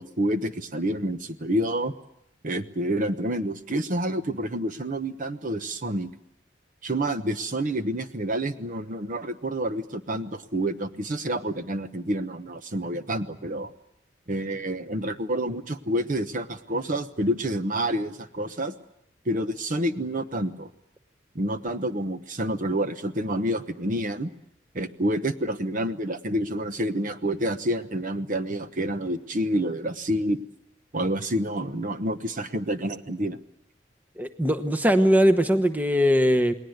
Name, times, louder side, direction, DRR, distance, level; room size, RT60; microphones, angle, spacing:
voice 1, 0.0-1.9 2.4-6.1 6.8-13.7 14.3-18.7 19.2-20.7 21.3-24.3 24.7-30.4 30.9-33.4, right 1 dB, 45° right, 9 dB, 1.1 m, -28 dB
voice 2, 34.2-36.5, equal, 10° right, 7 dB, 1.1 m, -20 dB
29.0 x 20.0 x 8.0 m, 0.79 s
head